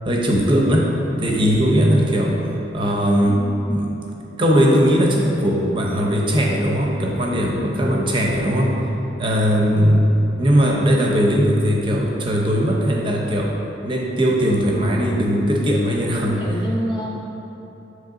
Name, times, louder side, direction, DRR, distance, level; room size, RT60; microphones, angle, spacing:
voice 1, 0.0-0.9 1.2-3.4 3.7-3.9 4.4-8.9 9.2-16.4, equal, 25° right, -2 dB, 0.6 m, -19 dB
voice 2, 3.2-3.9 7.6-8.0 14.5-15.1 16.4-17.2, equal, 25° left, -4 dB, 0.8 m, -30 dB
8.1 x 3.1 x 3.7 m, 3.0 s
head